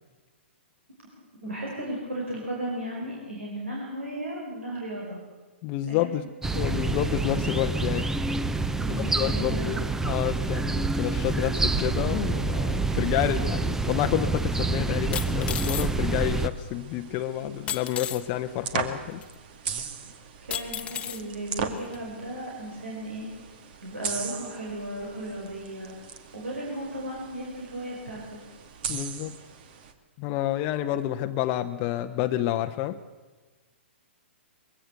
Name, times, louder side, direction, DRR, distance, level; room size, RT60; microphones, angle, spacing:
voice 1, 1.2-5.2 5.9-6.1 8.8-9.7 20.4-23.3 23.8-25.9 26.3-28.4, right 1 dB, 90° right, -3 dB, 5.3 m, -35 dB
voice 2, 5.6-6.3 6.5-8.1 8.9-19.2 28.9-29.3 30.2-33.0, left 13 dB, 35° left, 8 dB, 0.8 m, -29 dB
sound 1, 6.4-16.5, right 3 dB, 5° right, 0.6 m, -27 dB
sound 2, 13.8-13.9 15.1-15.9 17.7-18.2 19.2-19.3 20.5-21.2 21.9-22.0, left 9 dB, 20° left, 1.1 m, -33 dB
sound 3, 15.4-29.9, right 6 dB, 50° right, 2.1 m, -39 dB
22.0 x 16.0 x 8.0 m, 1.3 s
hypercardioid pair, 125°, 7 cm